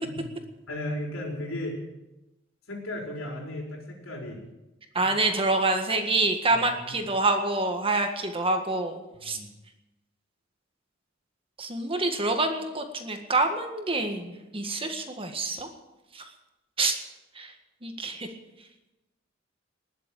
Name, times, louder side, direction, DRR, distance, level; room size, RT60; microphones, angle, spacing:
voice 1, 0.7-1.7 2.7-4.4 4.9-5.1 6.5-6.9 9.2-9.5, left 1 dB, 85° left, -1 dB, 4.8 m, -35 dB
voice 2, 5.0-9.4 11.6-15.7 16.1-16.3 16.8-17.0 17.4-17.5 17.8-18.3, right 2 dB, 25° right, 5 dB, 1.7 m, -27 dB
20.5 x 7.5 x 8.8 m, 1.0 s
head